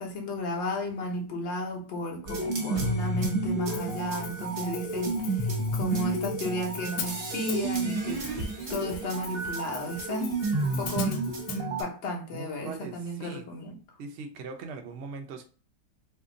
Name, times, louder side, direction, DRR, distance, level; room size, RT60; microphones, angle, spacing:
voice 1, 0.0-11.3 11.5-13.7, left 1 dB, 50° left, 1 dB, 1.0 m, -34 dB
sound 1, 2.3-11.8, right 2 dB, 40° right, 1.0 m, -31 dB
Hi-hat, 3.7-11.6, left 7 dB, 80° left, 1.3 m, -43 dB
voice 2, 12.3-13.5 14.0-15.4, right 4 dB, 75° right, 5 dB, 0.6 m, -40 dB
2.8 x 2.6 x 3.7 m, 0.38 s
omnidirectional pair, 1.9 m